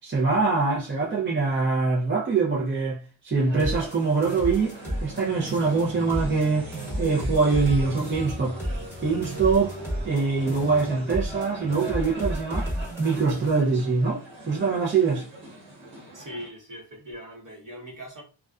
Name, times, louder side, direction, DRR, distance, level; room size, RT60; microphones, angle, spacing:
voice 1, 0.0-6.7 7.0-8.6 9.0-9.8 10.0-12.7 13.0-15.3, right 4 dB, 25° right, 0.5 m, -24 dB
sound 1, 3.3-16.5, right 1 dB, 80° right, 1.0 m, -40 dB
sound 2, 3.6-5.2 5.5-6.5 6.7-10.2 10.5-11.5 11.7-13.6, equal, 5° right, 1.0 m, -32 dB
voice 2, 16.1-18.2, equal, 45° right, 1.0 m, -40 dB
2.4 x 2.2 x 2.3 m
wide cardioid pair, 115°, 45 cm